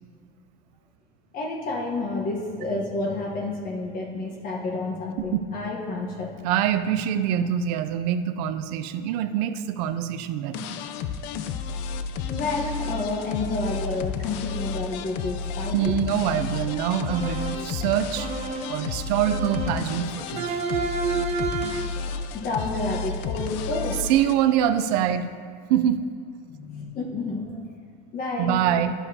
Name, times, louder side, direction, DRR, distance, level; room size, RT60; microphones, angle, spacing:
voice 1, 1.3-6.4 12.3-15.9 22.3-24.0 26.5-27.7 28.1-28.6, left 2 dB, 45° left, 0 dB, 1.2 m, -30 dB
voice 2, 6.4-10.8 15.7-18.3 18.7-20.6 24.1-25.3 25.7-26.0 28.4-28.9, right 10 dB, 70° right, 11 dB, 0.5 m, -24 dB
sound 1, 10.5-24.3, left 6 dB, 65° left, 0.5 m, -32 dB
sound 2, 17.1-17.7 18.2-18.8 19.3-19.9 20.4-22.0, right 4 dB, 30° right, 0.9 m, -29 dB
10.5 x 7.2 x 2.8 m, 2.3 s
supercardioid pair, 105°, 21 cm